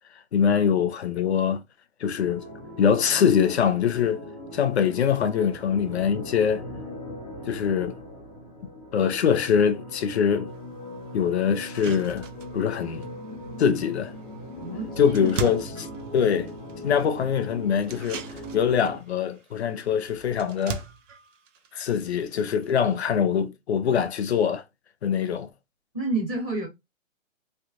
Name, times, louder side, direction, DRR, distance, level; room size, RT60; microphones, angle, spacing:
voice 1, 0.3-1.6 2.0-2.4 2.8-4.2 4.5-6.6 7.5-8.0 8.9-10.5 11.1-12.2 12.5-13.1 13.6-14.1 15.0-15.9 16.1-16.5 16.8-20.8 21.7-24.6 25.0-25.5, left 7 dB, 55° left, 0.6 m, -23 dB
sound 1, 2.2-19.0, equal, 25° left, 1.3 m, -40 dB
sound 2, 10.5-10.6 11.1-11.2 11.5-23.2, right 6 dB, 65° right, 0.7 m, -41 dB
voice 2, 14.6-15.5 25.9-26.7, right 3 dB, ahead, 0.4 m, -30 dB
3.2 x 2.5 x 2.8 m
hypercardioid pair, 150°, 40 cm